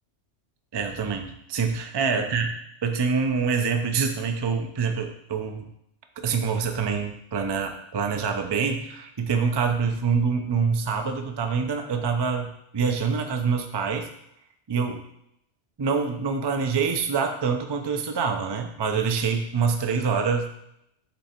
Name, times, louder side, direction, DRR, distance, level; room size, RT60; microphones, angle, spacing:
voice 1, 0.7-2.6 2.8-5.7 6.2-14.1 14.7-15.0 15.8-20.5, right 5 dB, 35° right, 5 dB, 0.4 m, -26 dB
8.5 x 3.3 x 4.3 m, 0.78 s
omnidirectional pair, 1.2 m